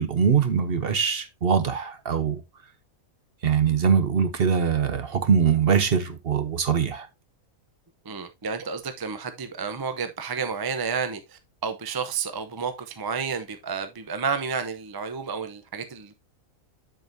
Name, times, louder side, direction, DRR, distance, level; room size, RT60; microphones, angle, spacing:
voice 1, 0.0-2.4 3.4-7.1, right 7 dB, 50° right, 0.9 m, -22 dB
voice 2, 8.0-16.1, right 5 dB, 35° right, 0.3 m, -31 dB
7.6 x 7.2 x 2.6 m
omnidirectional pair, 1.5 m